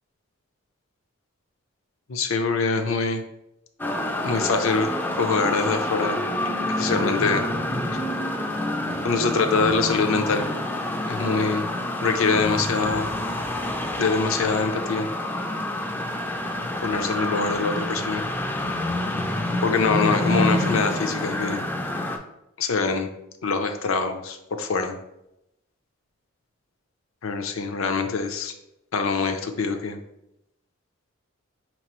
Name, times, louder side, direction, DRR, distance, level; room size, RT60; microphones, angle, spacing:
voice 1, 2.1-3.2 4.2-4.9 5.2-6.2 6.8-7.4 7.9-8.0 9.0-10.4 11.1-11.6 12.0-13.1 14.0-15.1 16.8-18.2 19.6-21.6 22.6-23.1 23.4-25.0 27.2-28.5 28.9-30.0, left 4 dB, 75° left, 6 dB, 0.5 m, -24 dB
sound 1, 3.8-22.2, left 1 dB, 10° left, 0.3 m, -27 dB
5.2 x 3.0 x 2.9 m, 0.85 s
head